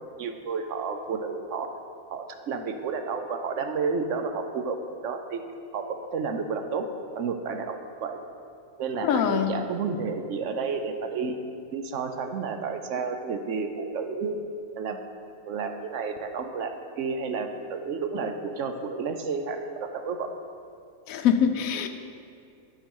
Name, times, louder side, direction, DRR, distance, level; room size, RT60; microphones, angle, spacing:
voice 1, 0.2-1.7 2.1-4.8 5.0-5.4 5.7-6.9 7.1-8.2 8.8-11.4 11.7-14.4 14.8-15.0 15.5-20.3, right 5 dB, 65° right, 6 dB, 0.9 m, -31 dB
voice 2, 9.0-9.5 21.1-21.9, left 8 dB, 75° left, 6 dB, 1.1 m, -23 dB
11.5 x 4.6 x 5.4 m, 2.4 s
omnidirectional pair, 1.6 m